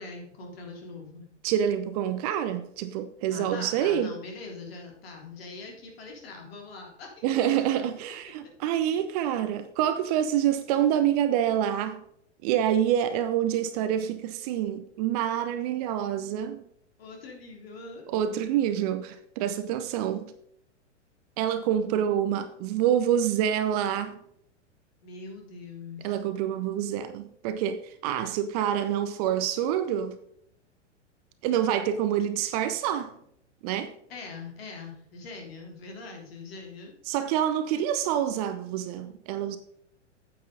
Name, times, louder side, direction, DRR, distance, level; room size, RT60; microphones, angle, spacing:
voice 1, 0.0-1.3 3.3-7.3 17.0-18.0 25.0-26.2 34.1-36.9, left 4 dB, 55° left, 3.5 m, -42 dB
voice 2, 1.4-4.1 7.2-12.0 12.4-16.6 18.1-20.3 21.4-24.2 26.0-30.2 31.4-33.1 33.6-33.9 37.1-39.6, right 10 dB, 30° right, 0.7 m, -27 dB
9.2 x 8.6 x 4.0 m
figure-of-eight pair, 105°, 37 cm